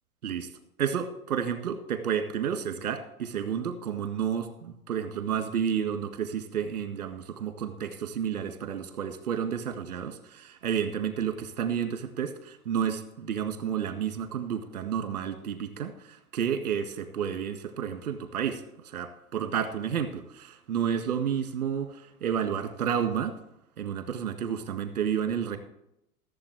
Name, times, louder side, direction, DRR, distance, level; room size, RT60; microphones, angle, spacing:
voice 1, 0.8-23.4 23.8-25.6, right 8 dB, 80° right, 8 dB, 2.1 m, -31 dB
15.5 x 7.5 x 4.8 m, 0.80 s
figure-of-eight pair, 90°, 44 cm